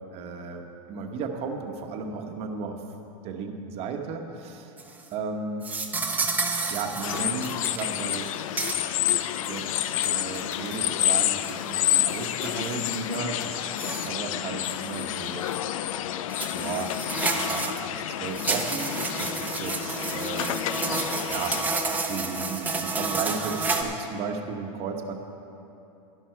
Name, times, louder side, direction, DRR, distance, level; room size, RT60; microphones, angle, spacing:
voice 1, 0.1-2.8 3.2-4.7 5.1-5.7 6.7-8.3 8.8-13.7 14.0-15.5 15.8-16.1 16.5-20.6 21.3-21.6 21.9-25.1, right 5 dB, 35° right, 4 dB, 1.1 m, -35 dB
sound 1, 4.8-5.1 5.6-7.8 8.1-8.3 8.6-8.7 9.4-9.5 10.3-10.9 11.4-13.2 13.7-14.1 14.6-15.0 15.5-15.6 16.3-17.8 18.3-23.8, right 3 dB, 10° right, 0.7 m, -30 dB
sound 2, 6.7-6.8 7.2-7.3 7.6-7.8 8.1-8.2 8.6-8.8 9.1-10.7 11.0-11.1 11.5-11.6 12.0-12.1 12.4-12.6 12.9-13.0 13.4-13.5 13.9-14.0, left 2 dB, 15° left, 1.7 m, -44 dB
sound 3, 7.0-21.6, left 12 dB, 90° left, 0.4 m, -29 dB
11.5 x 11.5 x 4.6 m, 2.9 s
supercardioid pair, 145°, 17 cm